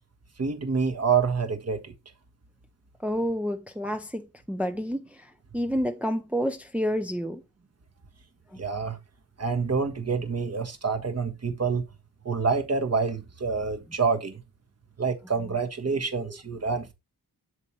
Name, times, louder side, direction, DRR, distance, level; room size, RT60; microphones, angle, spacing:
voice 1, 0.4-1.9 8.6-9.0 9.4-11.9 12.2-14.4 15.0-16.9, right 5 dB, 40° right, 1.5 m, -27 dB
voice 2, 3.0-5.3 5.5-7.4 16.2-16.3, equal, 5° right, 0.8 m, -29 dB
8.0 x 7.3 x 3.2 m
wide cardioid pair, 110°, 40 cm